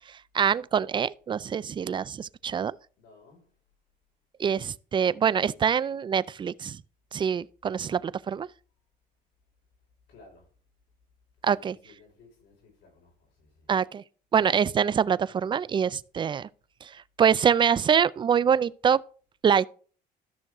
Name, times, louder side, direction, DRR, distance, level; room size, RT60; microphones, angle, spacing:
voice 1, 0.3-2.8 4.4-6.8 7.1-8.5 11.4-11.8 13.7-14.0 14.3-16.5 16.8-19.0 19.4-19.6, right 7 dB, 30° right, 0.4 m, -25 dB
voice 2, 3.0-3.6 10.1-10.5 11.4-13.7, left 3 dB, 80° left, 5.1 m, -57 dB
13.5 x 6.4 x 3.6 m
cardioid pair, 110°, 17 cm